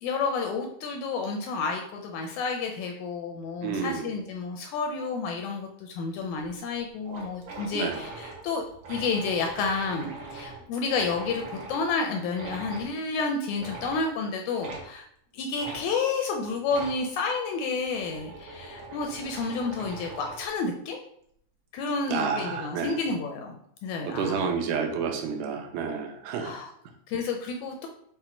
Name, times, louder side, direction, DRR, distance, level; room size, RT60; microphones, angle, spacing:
voice 1, 0.0-8.6 8.9-15.0 15.3-21.0 21.7-24.5 26.4-26.7 27.1-27.9, left 4 dB, 80° left, 2 dB, 1.7 m, -30 dB
voice 2, 3.6-4.1 7.7-8.0 22.1-23.0 24.0-26.5, right 6 dB, 80° right, 3 dB, 2.0 m, -30 dB
sound 1, 6.4-6.5 6.8-6.9 7.0-11.9 12.3-12.9 13.6-14.1 14.6-14.9 15.6-15.8 16.7-17.0 17.8-20.5, right 3 dB, 65° right, 1.7 m, -41 dB
5.7 x 2.1 x 4.3 m, 0.68 s
omnidirectional pair, 3.7 m